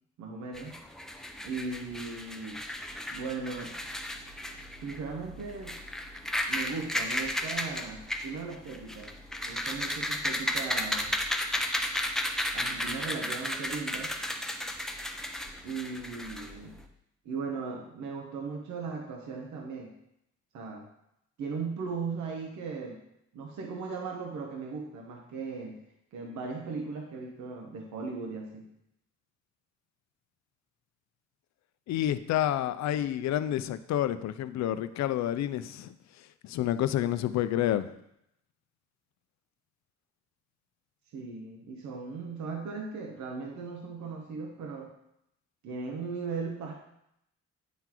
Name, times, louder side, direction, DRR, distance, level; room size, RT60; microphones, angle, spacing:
voice 1, 0.2-0.8 1.4-2.6 3.1-3.7 4.8-5.8 6.5-9.1 9.4-11.2 12.5-14.2 15.6-16.7 17.2-19.9 20.5-20.9 21.4-23.0 23.3-25.8 26.1-28.7 41.1-44.9 45.6-46.7, right 4 dB, 70° right, 1 dB, 0.9 m, -37 dB
sound 1, 0.5-16.8, left 1 dB, ahead, 0.6 m, -34 dB
voice 2, 31.9-35.9 36.4-37.9, left 12 dB, 65° left, 13 dB, 0.4 m, -29 dB
9.2 x 3.8 x 3.0 m, 0.79 s
cardioid pair, 90°, 30 cm